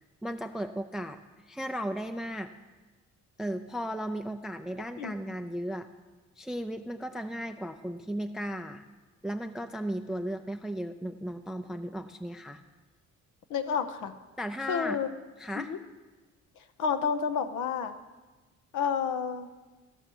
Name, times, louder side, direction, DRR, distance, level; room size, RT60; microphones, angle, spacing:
voice 1, 0.2-1.2 1.5-2.5 3.4-5.9 6.4-8.8 9.2-12.6 14.4-15.0 15.4-15.7, equal, ahead, 7 dB, 0.4 m, -35 dB
voice 2, 5.0-5.3 13.5-14.2 14.7-15.1 15.6-15.8 16.8-17.9 18.7-19.5, left 6 dB, 85° left, 8 dB, 0.8 m, -30 dB
14.0 x 5.5 x 6.1 m, 1.2 s
cardioid pair, 90°, 30 cm